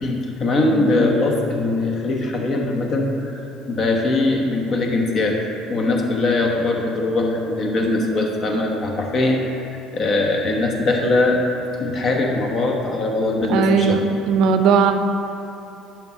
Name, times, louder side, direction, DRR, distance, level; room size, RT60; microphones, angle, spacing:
voice 1, 0.0-3.4 3.7-5.4 5.7-9.4 9.9-11.4 11.8-14.0, left 2 dB, 50° left, 1 dB, 1.1 m, -21 dB
voice 2, 13.5-14.0 14.3-14.9, right 6 dB, 60° right, 6 dB, 0.5 m, -17 dB
10.5 x 5.9 x 3.0 m, 2.7 s
hypercardioid pair, 60°, 0 cm